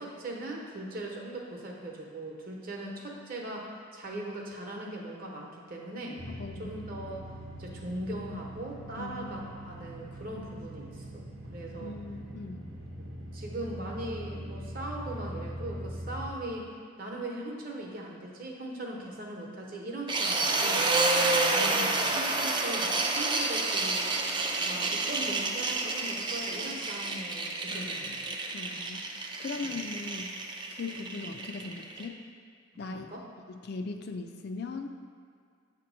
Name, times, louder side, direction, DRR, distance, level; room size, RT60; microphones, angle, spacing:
voice 1, 0.0-6.2 6.6-11.2 11.5-11.9 13.0-13.1 13.3-16.7 17.0-20.9 21.5-24.1 24.6-28.2 29.6-29.8 32.9-33.2, right 1 dB, 45° right, -1 dB, 0.9 m, -39 dB
sound 1, 6.2-16.3, equal, 70° right, 0.9 m, -42 dB
voice 2, 6.3-6.7 9.0-9.5 11.8-12.7 27.7-28.2 28.5-30.4 30.7-32.2 32.8-33.1 33.5-34.9, left 3 dB, 50° left, 5 dB, 0.4 m, -39 dB
sound 2, 20.1-32.0, right 3 dB, 20° right, 0.4 m, -29 dB
7.9 x 3.0 x 6.2 m, 2.2 s
head